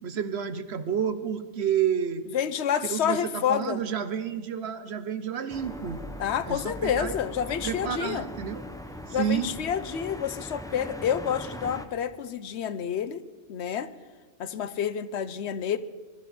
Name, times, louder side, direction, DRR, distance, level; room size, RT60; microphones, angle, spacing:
voice 1, 0.0-2.2 2.8-6.0 6.5-7.2 7.6-8.6 9.1-9.5, right 8 dB, 65° right, 11 dB, 1.1 m, -30 dB
voice 2, 2.3-3.8 6.2-8.2 9.1-13.2 13.5-13.9 14.4-15.8, left 8 dB, 65° left, 13 dB, 0.9 m, -29 dB
sound 1, 5.5-11.9, left 1 dB, 5° left, 0.6 m, -40 dB
22.0 x 12.5 x 4.3 m, 1.5 s
omnidirectional pair, 1.2 m